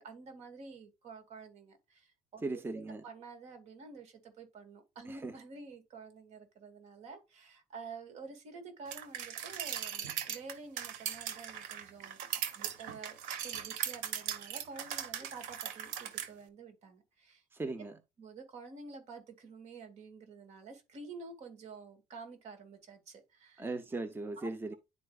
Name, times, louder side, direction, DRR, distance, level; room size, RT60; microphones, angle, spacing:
voice 1, 0.0-2.6 3.0-13.2 13.4-17.4 18.2-23.7 24.4-24.5, right 4 dB, 60° right, 2.5 m, -49 dB
voice 2, 2.4-3.0 5.1-5.3 17.5-18.0 23.6-24.7, right 2 dB, 15° right, 0.8 m, -38 dB
sound 1, 8.9-16.3, right 9 dB, 85° right, 1.1 m, -39 dB
11.0 x 4.6 x 2.4 m
cardioid pair, 105°, 13 cm